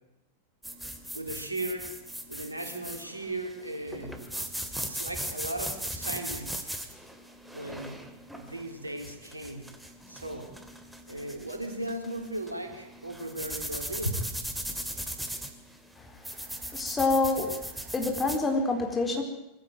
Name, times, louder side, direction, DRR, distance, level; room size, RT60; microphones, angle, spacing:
sound 1, 0.6-18.4, right 1 dB, 5° right, 2.5 m, -39 dB
voice 1, 1.1-1.9 2.3-4.2 4.7-6.7 7.4-8.0 8.3-9.7 10.1-10.5 11.1-14.2, right 1 dB, 85° right, 4 dB, 3.5 m, -36 dB
voice 2, 16.7-17.5 17.9-19.2, left 3 dB, 15° left, 3 dB, 4.2 m, -26 dB
21.5 x 16.0 x 9.4 m, 0.89 s
figure-of-eight pair, 90°, 0 cm